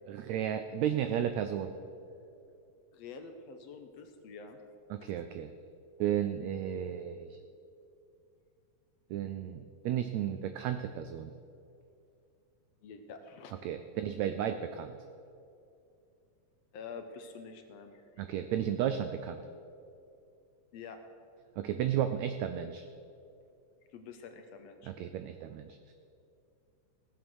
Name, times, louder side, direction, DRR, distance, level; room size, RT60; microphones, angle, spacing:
voice 1, 0.1-1.7 4.9-5.5 6.0-7.4 9.1-11.3 13.6-15.0 18.2-19.4 21.6-22.8 24.8-25.9, right 10 dB, 85° right, 9 dB, 1.5 m, -33 dB
voice 2, 2.9-4.6 5.0-5.1 12.8-13.5 16.7-18.0 20.7-21.0 23.9-24.9, left 5 dB, 70° left, 6 dB, 1.7 m, -47 dB
16.5 x 7.7 x 6.3 m, 2.6 s
omnidirectional pair, 3.7 m